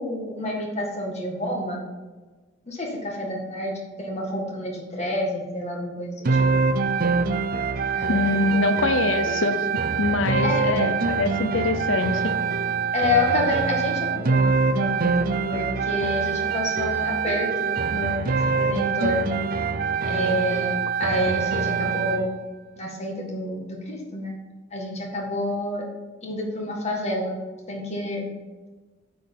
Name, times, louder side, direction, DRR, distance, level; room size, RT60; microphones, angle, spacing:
voice 1, 0.0-1.8 2.7-6.5 7.9-8.4 8.7-9.2 10.4-10.7 12.9-18.2 18.6-19.2 20.1-22.3 22.8-24.4 24.7-25.8 26.2-27.4 27.7-28.3, left 1 dB, 35° left, -1 dB, 1.8 m, -28 dB
sound 1, 6.3-22.3, right 5 dB, 50° right, 0.5 m, -24 dB
voice 2, 8.1-9.6 10.0-12.2, left 3 dB, 80° left, 9 dB, 0.8 m, -24 dB
9.1 x 4.6 x 5.5 m, 1.3 s
head